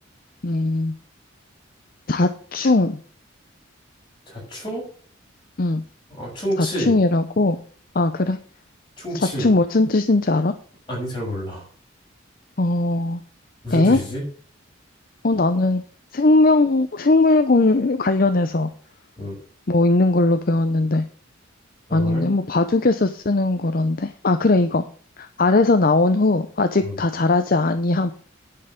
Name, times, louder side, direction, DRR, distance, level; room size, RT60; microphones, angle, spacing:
voice 1, 0.4-0.9 2.1-3.0 5.6-5.8 6.6-7.6 7.9-8.4 9.1-10.5 12.6-13.2 13.7-14.0 15.2-15.8 16.1-18.7 19.7-21.0 21.9-24.8 25.2-28.1, left 2 dB, 45° left, 9 dB, 0.7 m, -19 dB
voice 2, 4.3-4.8 6.1-6.9 9.0-9.5 10.9-11.6 13.6-14.2 19.2-19.3 21.9-22.3 26.8-27.0, equal, 25° left, -3 dB, 6.7 m, -29 dB
10.5 x 5.6 x 6.6 m, 0.43 s
head